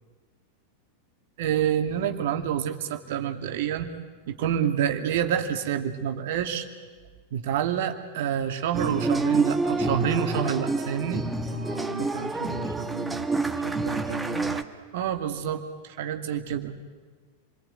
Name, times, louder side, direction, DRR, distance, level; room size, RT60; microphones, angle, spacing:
voice 1, 1.4-3.9 4.3-6.7 7.3-11.2 14.9-16.7, right 9 dB, 55° right, 5 dB, 2.3 m, -27 dB
sound 1, 8.7-14.6, right 3 dB, 5° right, 1.7 m, -28 dB
voice 2, 11.5-14.6, right 4 dB, 70° right, 8 dB, 1.9 m, -38 dB
28.5 x 23.0 x 9.1 m, 1.4 s
figure-of-eight pair, 90°, 0 cm